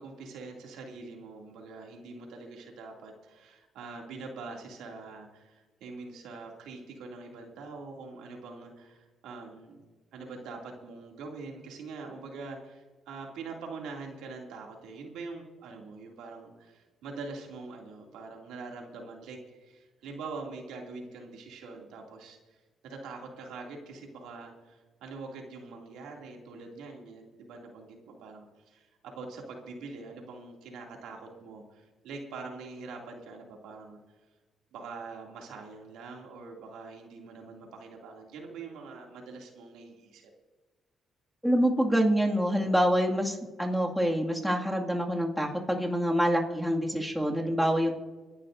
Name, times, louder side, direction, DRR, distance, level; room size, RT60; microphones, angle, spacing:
voice 1, 0.0-9.8 10.1-22.4 22.8-34.0 34.7-40.3, right 4 dB, 90° right, 1 dB, 2.5 m, -44 dB
voice 2, 41.4-47.9, equal, ahead, -1 dB, 2.1 m, -26 dB
27.0 x 11.5 x 2.6 m, 1.3 s
cardioid pair, 90°, 0 cm